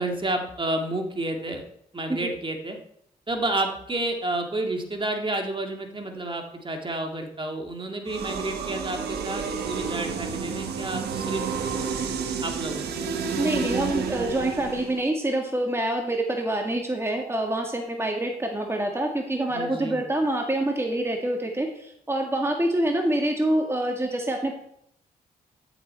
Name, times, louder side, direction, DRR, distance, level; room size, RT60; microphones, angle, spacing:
voice 1, 0.0-1.6 1.9-2.8 3.3-11.4 12.4-13.0 19.5-20.0, right 2 dB, 30° right, 3 dB, 2.3 m, -30 dB
sound 1, 8.1-15.0, right 6 dB, 85° right, 1.2 m, -30 dB
voice 2, 13.4-24.5, right 1 dB, 15° right, 2 dB, 1.9 m, -26 dB
13.0 x 7.0 x 4.5 m, 0.72 s
supercardioid pair, 55°, 16 cm